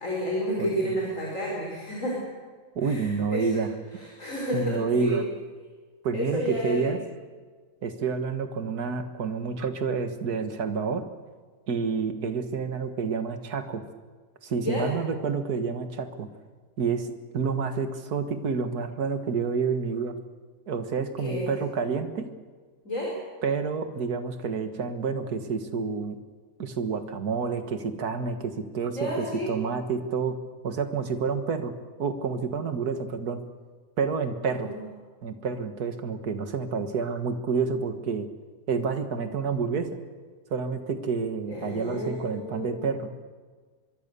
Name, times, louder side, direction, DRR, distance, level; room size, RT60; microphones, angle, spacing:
voice 1, 0.0-2.2 2.8-3.6 3.9-5.2 6.1-7.0 14.6-14.9 21.2-21.5 22.8-23.1 28.9-29.5 34.5-34.8 41.5-42.9, equal, 25° left, -3 dB, 5.8 m, -31 dB
voice 2, 0.6-1.0 2.7-3.7 4.5-5.2 6.0-7.0 7.8-11.0 11.7-13.8 14.4-16.3 16.8-20.1 20.7-22.3 23.4-26.2 26.6-30.4 30.6-31.7 32.0-33.4 34.0-34.7 35.2-38.3 38.7-39.9 40.5-43.1, right 5 dB, 40° right, 8 dB, 1.6 m, -29 dB
24.5 x 23.5 x 6.9 m, 1.5 s
omnidirectional pair, 3.3 m